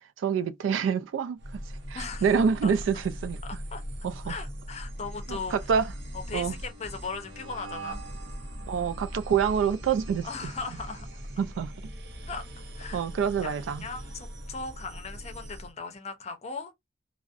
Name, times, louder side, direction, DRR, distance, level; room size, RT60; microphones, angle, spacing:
voice 1, 0.2-1.6 1.9-3.4 4.0-4.3 5.5-5.9 6.3-6.5 8.7-10.3 11.4-11.7 12.9-13.8, right 7 dB, 85° right, 0.3 m, -26 dB
sound 1, 1.4-15.7, equal, 65° right, 0.7 m, -40 dB
voice 2, 1.9-2.4 2.6-2.7 3.4-3.8 4.2-5.7 6.3-8.0 10.2-11.1 12.3-12.5 12.8-13.1 13.4-16.7, left 4 dB, 35° left, 0.5 m, -38 dB
2.5 x 2.0 x 2.4 m
head